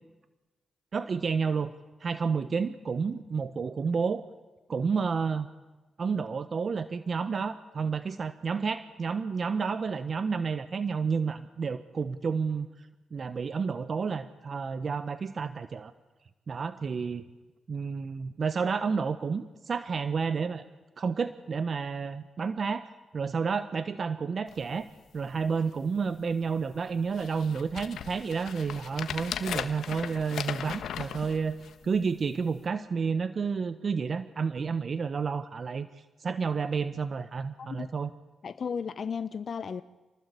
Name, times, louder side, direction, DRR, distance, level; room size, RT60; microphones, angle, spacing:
voice 1, 0.9-1.7 2.0-4.2 4.7-5.5 6.0-15.9 16.5-17.2 17.7-20.7 21.0-24.9 25.1-31.6 31.8-35.9 36.2-38.1, right 5 dB, 60° right, 12 dB, 1.1 m, -30 dB
sound 1, 24.5-24.6 25.2-25.3 25.5-26.0 26.6-26.7 27.1-32.0 32.6-32.7, left 8 dB, 80° left, 1.4 m, -38 dB
voice 2, 38.4-39.8, left 6 dB, 65° left, 13 dB, 0.8 m, -34 dB
28.0 x 20.0 x 8.4 m, 1.2 s
supercardioid pair, 40°, 0 cm